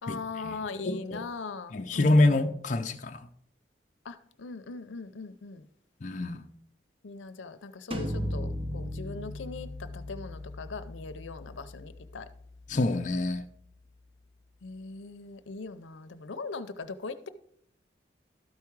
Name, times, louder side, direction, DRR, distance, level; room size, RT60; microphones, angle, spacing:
voice 1, 0.0-2.3 4.0-5.7 7.0-12.3 14.6-17.3, left 3 dB, 90° left, 0.6 m, -40 dB
voice 2, 0.8-1.2 1.7-3.2 6.0-6.4 12.7-13.4, left 2 dB, 40° left, 0.5 m, -26 dB
sound 1, 7.9-13.5, equal, 30° right, 0.7 m, -38 dB
12.5 x 4.7 x 4.6 m
head